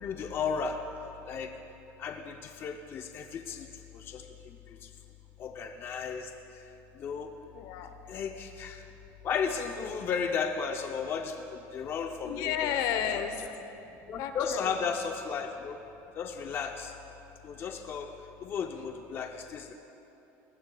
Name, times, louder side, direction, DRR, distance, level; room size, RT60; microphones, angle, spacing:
voice 1, 0.0-0.8 1.3-1.5 2.0-3.7 3.9-4.2 5.4-6.3 7.0-7.3 8.1-8.8 9.2-12.7 13.1-13.5 14.1-15.8 16.2-16.9 17.4-18.1 18.4-19.7, left 6 dB, 35° left, 4 dB, 0.6 m, -34 dB
voice 2, 7.5-7.9 12.2-13.3 14.2-14.7, left 9 dB, 65° left, 8 dB, 0.8 m, -32 dB
19.0 x 13.5 x 2.3 m, 2.9 s
cardioid pair, 140°, 7 cm